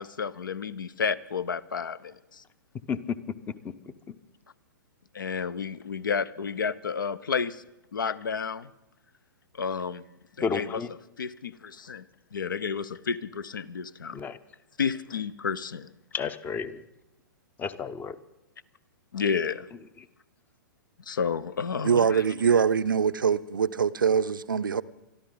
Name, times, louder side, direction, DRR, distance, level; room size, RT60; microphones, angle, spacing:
voice 1, 0.0-2.4 5.1-7.6 7.9-8.7 9.6-10.0 10.4-10.8 11.2-12.0 12.3-14.2 14.8-15.9 19.1-19.7 21.1-22.2, left 6 dB, 70° left, 0.6 m, -31 dB
voice 2, 10.4-10.9 14.1-14.4 16.1-16.8 17.6-18.2, left 5 dB, 15° left, 0.6 m, -31 dB
voice 3, 21.8-24.8, right 6 dB, 75° right, 0.5 m, -23 dB
23.5 x 12.5 x 3.9 m
figure-of-eight pair, 115°, 11 cm